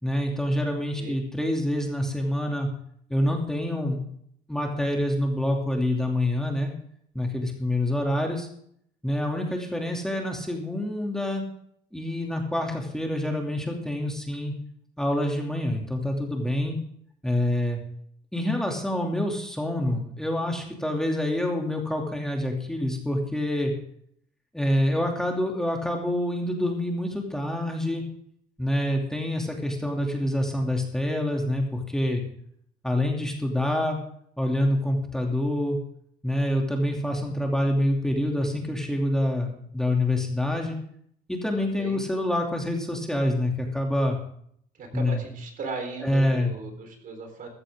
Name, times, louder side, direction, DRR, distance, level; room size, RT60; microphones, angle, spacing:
voice 1, 0.0-2.7 3.1-4.0 4.5-6.7 7.1-8.5 9.0-11.4 11.9-14.5 15.0-16.7 17.2-17.8 18.3-23.7 24.5-28.0 28.6-32.2 32.8-34.0 34.4-35.8 36.2-40.8 41.3-44.2 44.9-45.2 46.0-46.5, left 1 dB, 5° left, 1 dB, 2.6 m, -26 dB
voice 2, 41.5-42.0 44.8-47.5, right 3 dB, 55° right, 5 dB, 4.0 m, -37 dB
14.5 x 14.0 x 3.7 m, 0.66 s
cardioid pair, 110°, 17 cm